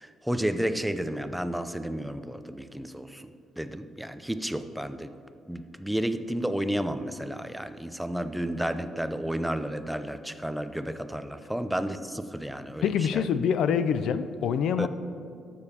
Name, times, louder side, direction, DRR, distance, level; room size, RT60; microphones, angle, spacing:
voice 1, 0.0-5.1 5.5-12.8 13.1-13.2 14.8-14.9, right 1 dB, 5° right, 10 dB, 0.4 m, -32 dB
voice 2, 12.8-14.9, left 7 dB, 75° left, 13 dB, 0.3 m, -25 dB
12.5 x 7.0 x 2.8 m, 2.5 s
cardioid pair, 90°, 0 cm